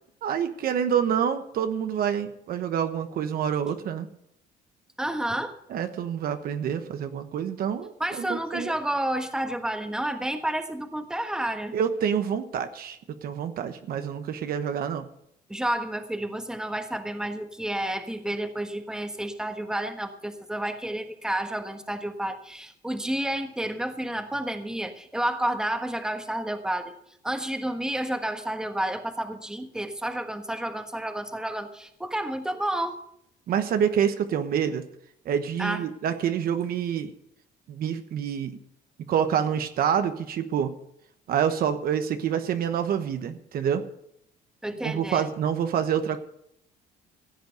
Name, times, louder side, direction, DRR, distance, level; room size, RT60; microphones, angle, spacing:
voice 1, 0.2-4.1 5.7-8.7 11.7-15.1 33.5-34.8 35.2-37.1 37.7-38.6 39.1-40.7 41.3-43.8 44.8-46.2, right 8 dB, 60° right, 9 dB, 1.1 m, -27 dB
voice 2, 5.0-5.5 8.0-11.8 15.5-26.9 27.2-33.0 35.6-35.8 44.6-45.3, right 1 dB, 5° right, 6 dB, 1.4 m, -30 dB
15.5 x 8.2 x 6.5 m, 0.74 s
cardioid pair, 110°, 17 cm